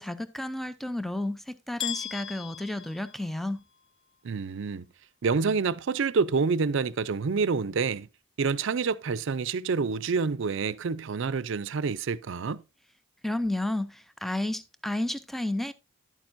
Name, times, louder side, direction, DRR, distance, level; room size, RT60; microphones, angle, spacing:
voice 1, 0.0-3.6 13.2-15.7, left 1 dB, ahead, 0.4 m, -32 dB
sound 1, 1.8-3.8, left 10 dB, 60° left, 0.7 m, -37 dB
voice 2, 4.2-4.9 5.2-8.1 8.4-12.6, right 5 dB, 65° right, 0.5 m, -27 dB
11.0 x 8.8 x 2.6 m
head